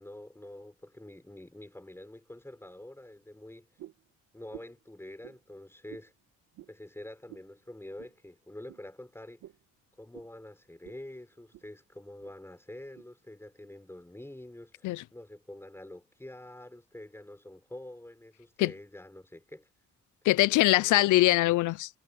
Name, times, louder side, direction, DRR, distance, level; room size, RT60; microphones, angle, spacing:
voice 1, 0.0-3.7 4.3-6.1 6.7-9.5 10.0-19.7 20.5-21.0, left 1 dB, 10° left, 6.8 m, -47 dB
sound 1, 3.8-4.1 4.5-4.8 5.2-5.4 5.9-6.1 6.5-6.8 7.3-7.5 8.0-8.2 8.7-8.8 9.4-9.6 10.1-10.3 10.8-11.0 11.3-11.7 12.2-12.3 13.0-13.1, right 14 dB, 85° right, 1.7 m, -50 dB
voice 2, 20.2-22.0, left 17 dB, 85° left, 0.6 m, -23 dB
cardioid pair, 90°, 30 cm